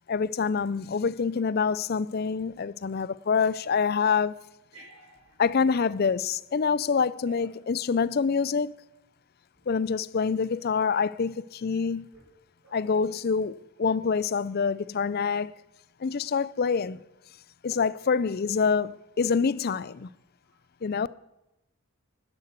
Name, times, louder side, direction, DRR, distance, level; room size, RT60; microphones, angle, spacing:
voice 1, 0.1-4.4 5.4-8.7 9.7-12.1 12.7-15.5 16.0-17.0 17.6-19.9 20.8-21.1, left 5 dB, 45° left, 0.4 m, -26 dB
voice 2, 4.7-5.4 5.8-6.0 7.3-7.8 9.5-9.7 12.1-12.2 12.6-13.2 15.0-15.1 16.1-16.3 19.6-19.9 20.5-20.6, right 2 dB, 65° right, 5.9 m, -53 dB
11.5 x 11.5 x 8.1 m
head